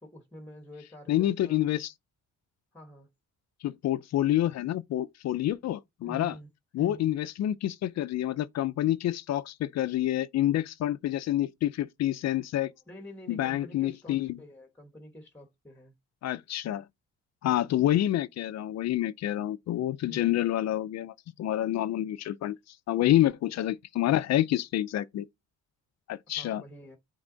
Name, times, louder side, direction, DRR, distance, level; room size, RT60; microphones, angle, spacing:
voice 1, 0.0-1.6 2.7-3.1 6.0-6.5 6.8-7.1 12.9-15.9 20.0-20.4 26.3-27.0, left 1 dB, 5° left, 1.3 m, -47 dB
voice 2, 1.1-1.9 3.6-6.3 6.7-12.7 13.3-14.3 16.2-16.8 17.4-25.3 26.1-26.6, left 13 dB, 60° left, 0.5 m, -28 dB
8.9 x 3.6 x 3.9 m
cardioid pair, 145°, 31 cm